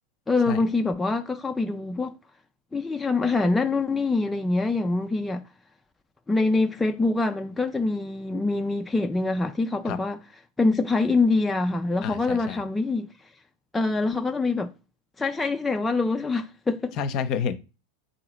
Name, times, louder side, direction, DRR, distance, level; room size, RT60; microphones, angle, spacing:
voice 1, 0.3-2.1 2.7-5.4 6.3-10.2 10.6-13.1 13.7-14.7 15.2-16.9, left 3 dB, 10° left, 0.3 m, -25 dB
voice 2, 12.0-12.6 17.0-17.6, left 7 dB, 50° left, 0.7 m, -29 dB
3.8 x 2.7 x 4.4 m
hypercardioid pair, 100°, 0 cm